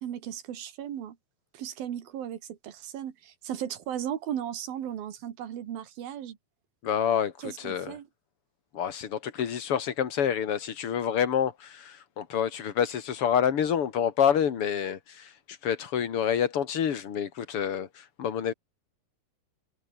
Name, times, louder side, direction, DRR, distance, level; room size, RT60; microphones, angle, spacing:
voice 1, 0.0-1.2 1.5-6.4 7.4-8.1, right 10 dB, 75° right, 3.9 m, -36 dB
voice 2, 6.8-8.0 8.7-18.5, left 8 dB, 45° left, 2.5 m, -28 dB
omnidirectional pair, 4.2 m